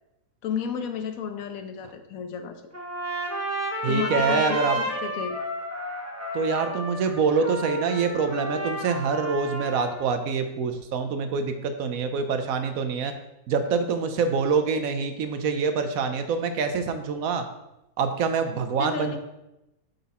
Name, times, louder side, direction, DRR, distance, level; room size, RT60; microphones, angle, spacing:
voice 1, 0.4-2.6 3.9-4.6 5.0-5.4 18.8-19.2, left 7 dB, 70° left, 7 dB, 1.1 m, -32 dB
Trumpet, 2.7-10.1, right 1 dB, 20° right, 0.4 m, -31 dB
voice 2, 3.8-4.8 6.3-13.1 13.5-17.4 18.0-19.2, right 5 dB, 70° right, 8 dB, 1.0 m, -25 dB
7.7 x 4.0 x 4.2 m, 0.92 s
omnidirectional pair, 1.6 m